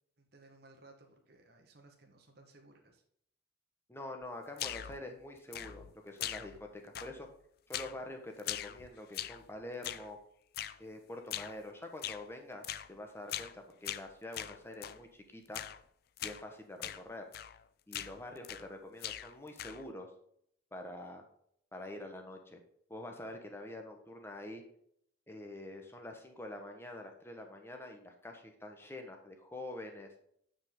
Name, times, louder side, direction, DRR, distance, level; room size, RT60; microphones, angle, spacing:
voice 1, 0.2-3.0, right 2 dB, 50° right, 3 dB, 1.3 m, -60 dB
voice 2, 3.9-7.3 7.7-10.2 10.8-15.6 16.2-17.2 17.9-20.1 20.7-21.2 21.7-22.6 22.9-24.6 25.3-30.1, left 1 dB, 10° left, 3 dB, 1.1 m, -46 dB
sound 1, 4.6-5.0 5.5-5.9 6.2-6.7 6.9-7.3 7.7-8.0 8.4-9.5 9.8-10.1 10.5-10.8 11.3-11.6 12.0-12.2 12.6-12.9 13.3-13.6 13.8-15.0 15.5-15.8 16.2-16.4 16.8-17.0 17.3-17.6 17.9-18.7 19.0-19.9, left 11 dB, 50° left, 0.4 m, -41 dB
8.7 x 5.2 x 3.7 m, 0.68 s
head